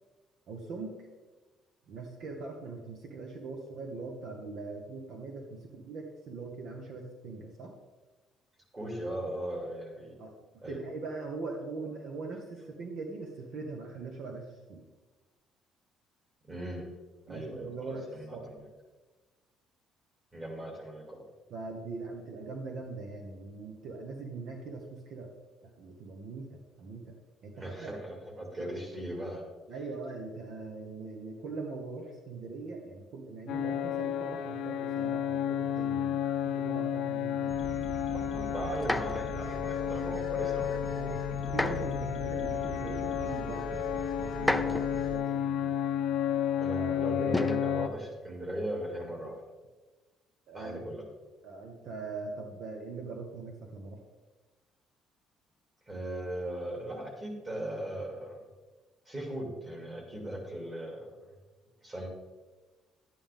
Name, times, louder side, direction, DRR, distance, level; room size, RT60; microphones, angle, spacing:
voice 1, 0.5-1.1 1.9-7.7 10.2-10.3 10.7-14.9 17.3-18.5 21.5-25.3 25.6-27.2 27.4-27.9 28.6-28.7 29.7-37.6 41.0-41.2 41.5-45.8 50.5-50.8 51.4-54.0, right 3 dB, 60° right, 2 dB, 1.3 m, -41 dB
voice 2, 8.7-10.1 10.6-10.8 16.5-16.9 17.3-18.6 20.3-21.2 27.5-29.4 38.1-40.9 46.6-49.4 50.5-51.0 55.9-58.4 59.1-61.1 61.8-62.1, right 1 dB, 20° right, 0 dB, 2.7 m, -38 dB
sound 1, 33.5-47.9, left 10 dB, 65° left, 0.6 m, -32 dB
sound 2, 37.5-45.2, equal, 35° right, 3.0 m, -40 dB
sound 3, 38.8-39.3 41.5-42.0 43.0-43.1 44.3-45.1 47.3-47.7 48.9-49.3, left 1 dB, 5° left, 0.5 m, -32 dB
11.5 x 9.7 x 3.6 m, 1.2 s
cardioid pair, 160°, 0 cm